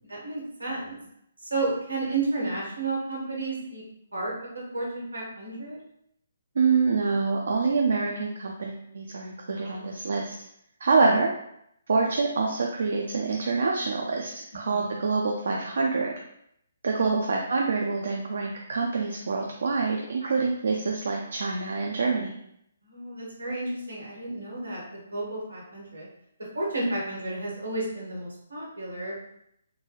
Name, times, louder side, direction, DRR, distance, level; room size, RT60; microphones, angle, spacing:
voice 1, 0.1-1.0 1.5-3.8 4.1-4.3 4.7-5.8 9.6-9.8 14.7-14.9 17.0-17.2 20.2-20.3 22.8-24.8 25.1-26.1 26.5-29.2, right 2 dB, 80° right, -4 dB, 1.5 m, -32 dB
voice 2, 6.6-10.3 10.8-11.3 11.9-16.1 16.8-22.3, right 4 dB, 60° right, 0 dB, 0.4 m, -26 dB
3.8 x 2.2 x 2.9 m, 0.75 s
figure-of-eight pair, 135°, 0 cm